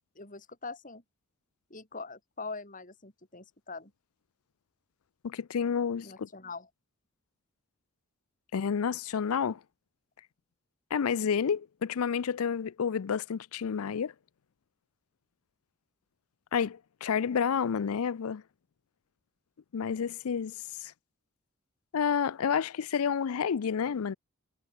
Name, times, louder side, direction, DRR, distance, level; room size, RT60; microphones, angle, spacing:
voice 1, 0.2-1.0 1.7-3.9 6.0-6.7, left 3 dB, 35° left, 5.3 m, -43 dB
voice 2, 5.2-6.3 8.5-9.6 10.9-14.1 16.5-18.4 19.7-20.5 20.8-20.9 21.9-24.1, left 7 dB, 80° left, 0.5 m, -30 dB
head